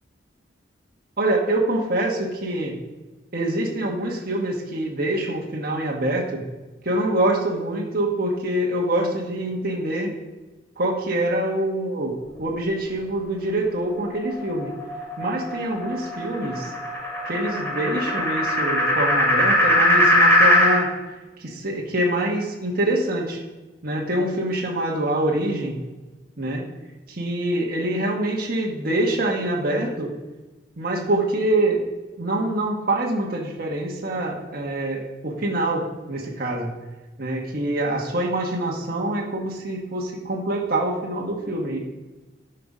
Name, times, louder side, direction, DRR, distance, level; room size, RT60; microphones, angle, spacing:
voice 1, 1.2-2.7 3.3-6.4 6.8-10.1 10.8-12.1 12.4-14.7 15.2-16.7 17.3-20.9 21.4-23.4 23.8-25.8 26.4-26.7 27.1-30.1 30.8-31.8 32.2-36.7 37.2-41.8, right 1 dB, 55° right, -2 dB, 1.4 m, -25 dB
sound 1, 14.1-20.8, left 1 dB, 15° left, 2.8 m, -21 dB
11.0 x 5.7 x 5.5 m, 1.2 s
head